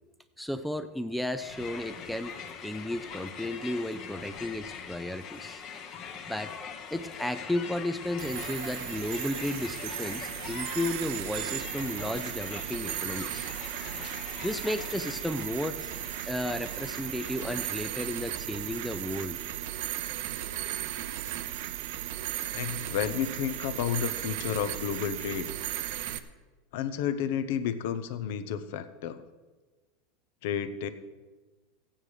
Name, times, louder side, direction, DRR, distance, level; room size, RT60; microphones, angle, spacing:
voice 1, 0.4-2.4 2.6-5.6 6.3-6.5 6.9-13.5 14.4-15.9 16.3-19.4, left 1 dB, ahead, 10 dB, 0.4 m, -33 dB
Crowd, 1.3-18.0, left 6 dB, 35° left, 1.1 m, -43 dB
sound 1, 8.2-26.2, right 13 dB, 60° right, 0.7 m, -36 dB
voice 2, 22.5-25.5 26.7-29.2 30.4-30.9, left 9 dB, 65° left, 12 dB, 0.9 m, -31 dB
15.0 x 8.9 x 4.9 m, 1.3 s
supercardioid pair, 170°, 0 cm